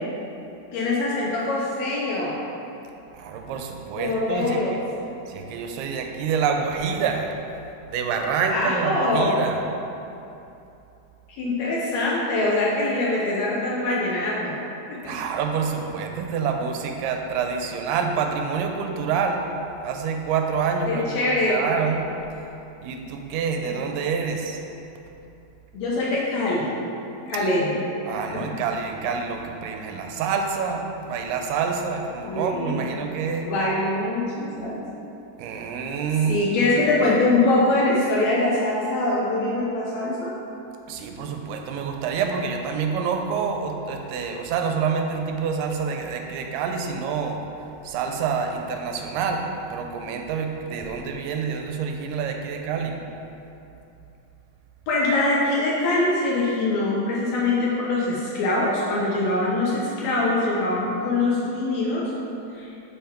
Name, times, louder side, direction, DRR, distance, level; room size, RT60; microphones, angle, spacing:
voice 1, 0.7-2.4 4.0-4.8 8.5-9.4 11.3-15.2 20.9-21.6 23.6-23.8 25.7-26.7 27.3-27.8 28.1-28.6 32.2-32.9 33.4-34.8 36.3-40.4 54.9-62.1 62.5-62.7, left 2 dB, 75° left, -5 dB, 1.7 m, -23 dB
voice 2, 3.1-4.8 5.3-7.3 7.9-9.6 15.0-19.5 19.8-22.1 22.8-24.6 28.1-33.5 35.4-36.4 40.9-47.4 47.8-53.0, right 6 dB, 90° right, 3 dB, 2.2 m, -27 dB
5.8 x 5.5 x 4.3 m, 2.8 s
omnidirectional pair, 3.8 m